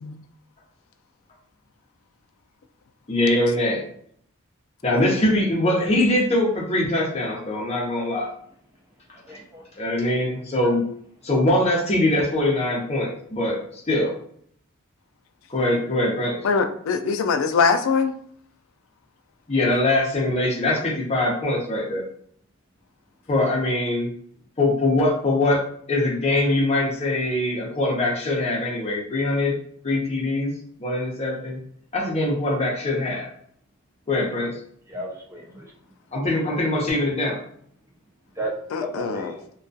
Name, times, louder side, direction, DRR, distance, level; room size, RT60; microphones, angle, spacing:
voice 1, 3.1-3.8 4.8-8.3 9.8-10.8 11.2-14.2 15.5-16.4 19.5-22.1 23.3-24.1 24.6-25.6 25.9-31.6 31.9-33.3 34.1-34.6 36.1-37.4, left 1 dB, 30° left, -2 dB, 0.6 m, -22 dB
voice 2, 9.3-9.7 34.9-35.7 38.4-39.4, right 1 dB, 15° right, 0 dB, 0.3 m, -33 dB
voice 3, 16.4-18.1 38.7-39.3, left 5 dB, 75° left, 7 dB, 0.3 m, -22 dB
2.3 x 2.2 x 2.6 m, 0.64 s
head